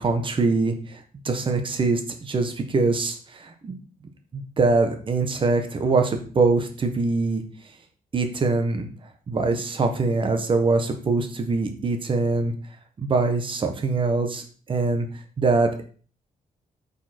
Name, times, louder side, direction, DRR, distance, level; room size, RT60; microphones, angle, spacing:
voice 1, 0.0-3.8 4.3-7.4 8.1-8.9 9.3-12.5 13.0-15.1 15.4-15.8, right 3 dB, 35° right, 6 dB, 1.4 m, -23 dB
8.9 x 5.7 x 4.5 m, 0.41 s
wide cardioid pair, 165°, 15 cm